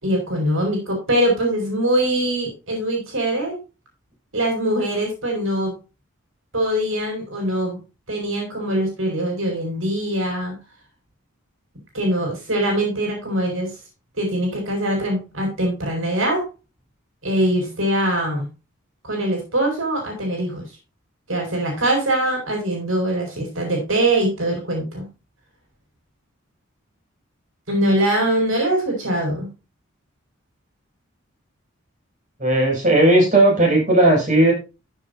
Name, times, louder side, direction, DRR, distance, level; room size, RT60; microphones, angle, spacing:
voice 1, 0.0-3.6 4.3-5.8 6.5-7.8 8.1-10.6 11.9-13.8 14.2-16.5 17.2-18.4 19.0-20.7 21.3-25.1 27.7-29.5, right 1 dB, 70° right, 1 dB, 5.6 m, -22 dB
voice 2, 32.4-34.5, right 1 dB, 35° right, -1 dB, 7.0 m, -15 dB
14.5 x 7.4 x 2.7 m, 0.28 s
head